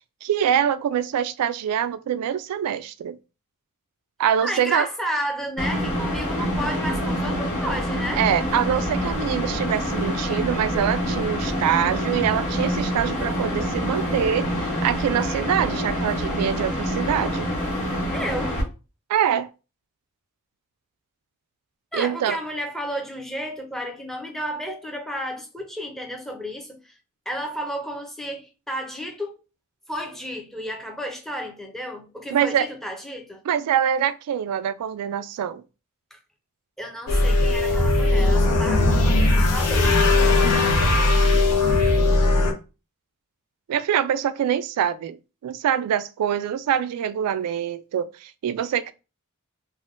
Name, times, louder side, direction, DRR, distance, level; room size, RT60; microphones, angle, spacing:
voice 1, 0.2-3.2 4.2-4.9 8.2-17.5 19.1-19.5 21.9-22.4 32.3-32.7 33.5-35.6 43.7-45.2 45.4-48.9, right 9 dB, 90° right, 0.3 m, -24 dB
voice 2, 4.4-8.2 18.1-18.6 21.9-27.0 27.3-29.4 29.9-33.4 36.1-36.2 36.8-40.7, equal, ahead, 0.5 m, -32 dB
sound 1, 5.6-18.6, equal, 30° left, 1.2 m, -26 dB
sound 2, 37.1-42.5, left 2 dB, 90° left, 0.6 m, -18 dB
3.3 x 2.2 x 2.5 m
head